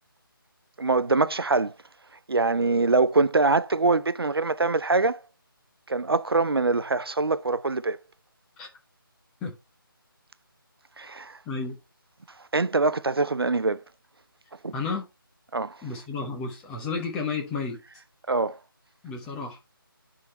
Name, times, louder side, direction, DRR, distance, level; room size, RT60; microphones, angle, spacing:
voice 1, 0.8-1.7 2.3-5.2 5.9-8.0 11.0-11.4 12.5-13.8 14.6-14.7 15.5-15.8 18.3-18.6, right 3 dB, 85° right, 0.5 m, -23 dB
voice 2, 11.5-11.8 14.7-15.1 15.8-17.8 19.0-19.6, left 4 dB, 5° left, 0.6 m, -32 dB
9.6 x 3.9 x 4.3 m
figure-of-eight pair, 160°, 12 cm